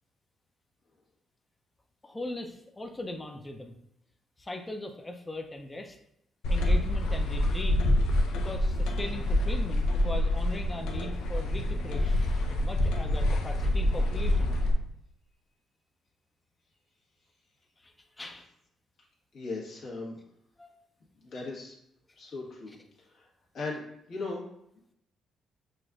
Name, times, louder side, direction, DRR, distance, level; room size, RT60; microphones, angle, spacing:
voice 1, 2.0-3.8 4.4-6.0 6.5-7.8 8.3-14.6 17.8-18.5 20.6-20.8 22.7-22.8, left 1 dB, 20° left, 4 dB, 0.4 m, -40 dB
sound 1, 6.4-14.7, left 1 dB, 85° left, 0.5 m, -26 dB
voice 2, 19.3-20.2 21.2-21.7 22.2-23.3 23.5-23.8 24.1-24.4, left 3 dB, 65° left, -4 dB, 1.3 m, -38 dB
6.0 x 2.5 x 2.3 m, 0.77 s
cardioid pair, 90°, 0 cm